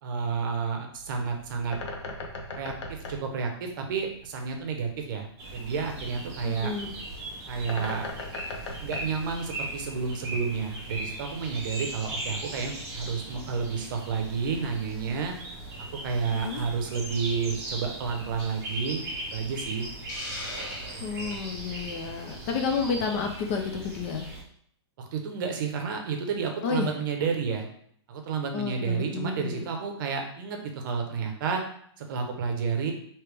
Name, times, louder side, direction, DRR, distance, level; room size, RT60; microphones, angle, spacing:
voice 1, 0.0-1.8 2.5-6.7 7.5-8.1 8.8-15.3 16.0-19.0 19.3-19.9 21.2-21.3 25.1-27.7 28.1-31.6 32.0-32.9, right 5 dB, 50° right, 4 dB, 0.7 m, -30 dB
Bird, 0.9-10.0, left 2 dB, 85° left, 0.8 m, -41 dB
sound 1, 5.4-24.4, right 1 dB, 20° right, 0.8 m, -39 dB
voice 2, 6.4-6.9 16.3-16.6 21.0-24.3 26.6-26.9 28.5-29.6, left 5 dB, 30° left, 3 dB, 0.4 m, -31 dB
Hiss, 20.1-21.4, left 1 dB, 45° left, 1.5 m, -38 dB
3.3 x 2.9 x 3.3 m, 0.65 s
hypercardioid pair, 155°, 14 cm